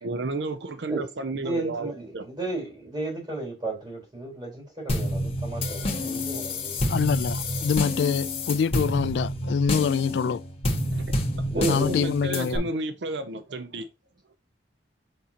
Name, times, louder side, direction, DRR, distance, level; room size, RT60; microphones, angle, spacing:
voice 1, 0.0-2.2 10.9-11.0 11.5-13.9, right 2 dB, 75° right, 0.6 m, -32 dB
voice 2, 1.3-6.8 11.5-12.1, right 2 dB, 25° right, 4.0 m, -33 dB
sound 1, 4.9-12.6, left 1 dB, 35° left, 1.5 m, -28 dB
voice 3, 6.9-10.4 11.7-12.6, left 6 dB, 75° left, 0.3 m, -25 dB
6.5 x 5.5 x 2.8 m
head